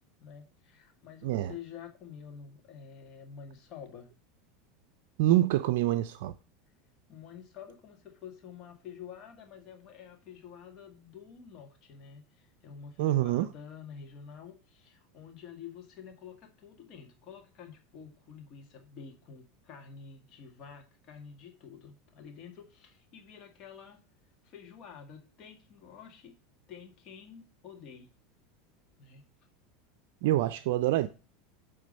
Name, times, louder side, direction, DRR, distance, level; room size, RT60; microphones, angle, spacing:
voice 1, 0.2-4.1 7.1-24.0 24.4-26.4 26.7-28.1 29.0-29.2, left 7 dB, 45° left, 1.9 m, -49 dB
voice 2, 5.2-6.3 13.0-13.5 30.2-31.1, right 14 dB, 70° right, 0.4 m, -26 dB
8.6 x 3.6 x 5.2 m
supercardioid pair, 115°, 0 cm